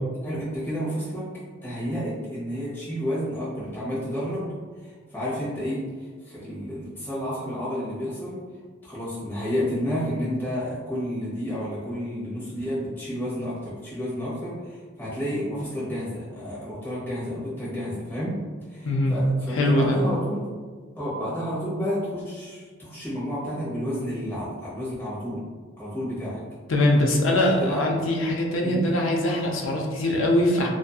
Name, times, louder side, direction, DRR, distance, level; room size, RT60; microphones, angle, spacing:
voice 1, 0.2-1.3 1.6-4.5 4.8-8.4 8.8-18.4 18.7-20.4 21.0-25.4 25.8-26.4 27.3-27.8 28.6-28.8, equal, 10° left, -10 dB, 0.9 m, -31 dB
voice 2, 18.8-19.1 19.5-20.0 26.7-30.7, left 1 dB, 70° left, 0 dB, 0.5 m, -22 dB
2.6 x 2.4 x 2.3 m, 1.5 s
head